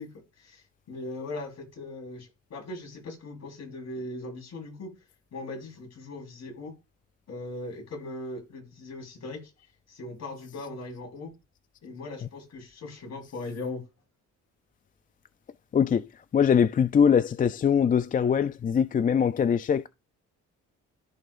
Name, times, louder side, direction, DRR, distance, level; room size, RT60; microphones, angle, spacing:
voice 1, 0.0-4.9 5.3-6.8 7.3-9.5 9.9-11.4 11.8-13.9, left 2 dB, 60° left, 4.2 m, -39 dB
voice 2, 15.7-19.9, left 7 dB, 30° left, 0.4 m, -22 dB
14.5 x 5.3 x 2.5 m
cardioid pair, 90°, 30 cm